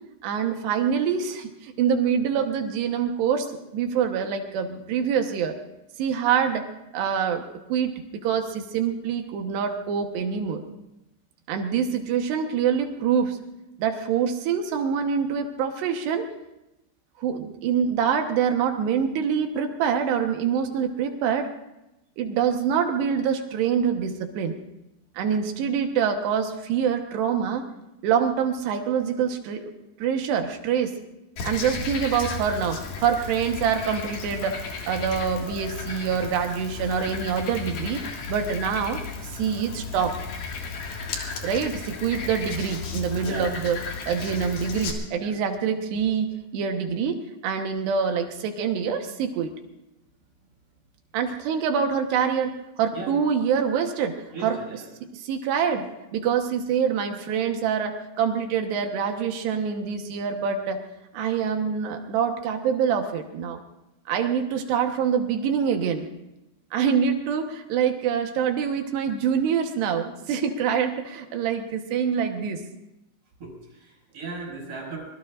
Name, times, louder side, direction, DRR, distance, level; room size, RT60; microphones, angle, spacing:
voice 1, 0.2-3.5 3.7-5.6 6.0-6.7 6.9-7.4 7.7-10.6 11.5-13.4 13.8-16.3 17.2-21.5 22.2-24.5 25.2-27.7 28.0-29.7 30.0-31.0 31.4-38.0 38.3-40.1 41.4-43.8 44.1-49.5 51.1-54.2 54.4-54.6 55.0-60.8 61.1-63.6 64.1-66.1 66.7-72.6, right 7 dB, 80° right, 5 dB, 3.3 m, -25 dB
Frog, 31.4-44.9, left 5 dB, 60° left, 3.3 m, -34 dB
voice 2, 43.2-43.5 44.2-44.4 45.2-45.4 52.9-53.2 54.3-54.9 73.4-75.0, right 3 dB, 40° right, -3 dB, 6.9 m, -37 dB
25.0 x 22.0 x 2.5 m, 0.91 s
omnidirectional pair, 4.9 m